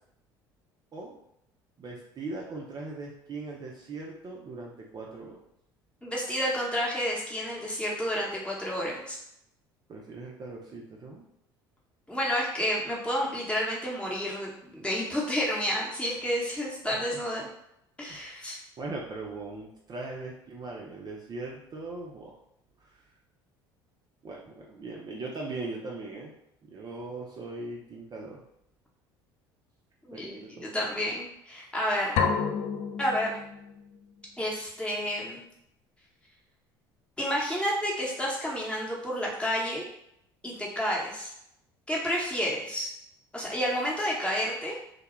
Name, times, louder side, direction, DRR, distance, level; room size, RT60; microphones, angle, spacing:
voice 1, 1.8-5.4 9.9-11.3 16.1-16.2 16.8-17.2 18.1-18.2 18.8-22.3 22.8-23.0 24.2-26.3 26.6-28.4 30.1-30.7 31.0-31.1, right 3 dB, 35° right, -2 dB, 0.5 m, -40 dB
voice 2, 6.0-9.2 12.1-17.5 18.0-18.6 30.0-32.2 33.0-33.4 34.4-35.4 37.2-39.8 40.4-41.3 41.9-42.9 43.3-44.8, equal, 10° left, -4 dB, 0.8 m, -30 dB
sound 1, 32.2-34.0, left 6 dB, 55° left, 0.4 m, -30 dB
2.2 x 2.1 x 3.0 m, 0.77 s
hypercardioid pair, 60°, 12 cm